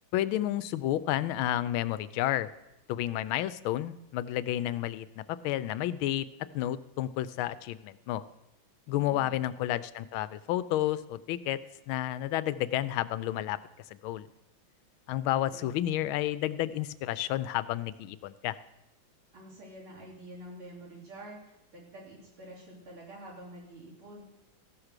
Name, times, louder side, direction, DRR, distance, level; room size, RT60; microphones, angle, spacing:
voice 1, 0.1-2.5 2.9-6.3 6.5-8.2 8.9-11.6 11.9-13.6 13.9-14.3 15.1-18.6, left 13 dB, 90° left, 15 dB, 1.4 m, -31 dB
voice 2, 8.9-9.4 15.5-15.7 19.3-24.2, right 1 dB, 85° right, -4 dB, 4.1 m, -48 dB
14.5 x 6.0 x 6.6 m, 0.88 s
omnidirectional pair, 2.2 m